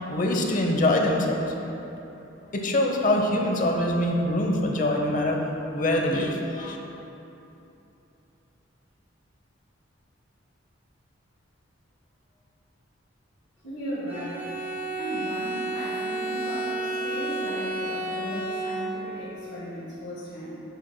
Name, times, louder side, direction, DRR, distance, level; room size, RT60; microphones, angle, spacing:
voice 1, 0.1-1.5 2.5-6.8, left 1 dB, 40° left, 1 dB, 0.8 m, -24 dB
voice 2, 13.6-20.6, equal, 65° left, -9 dB, 1.6 m, -36 dB
Bowed string instrument, 14.1-19.3, right 2 dB, 10° right, 0.6 m, -31 dB
10.5 x 8.0 x 2.2 m, 3.0 s
head